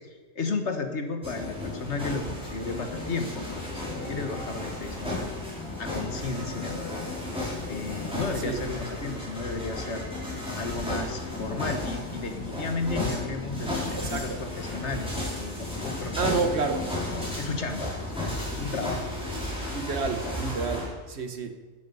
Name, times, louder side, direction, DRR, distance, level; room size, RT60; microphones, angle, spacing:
voice 1, 0.3-5.1 5.8-6.8 7.6-10.0 10.6-16.5 17.4-19.0, left 3 dB, 60° left, 1.6 m, -33 dB
sound 1, 1.2-20.9, left 2 dB, 5° right, 4.6 m, -33 dB
voice 2, 13.9-14.4 16.2-16.9 19.7-21.6, right 4 dB, 60° right, 1.3 m, -29 dB
13.0 x 10.5 x 5.4 m
omnidirectional pair, 1.3 m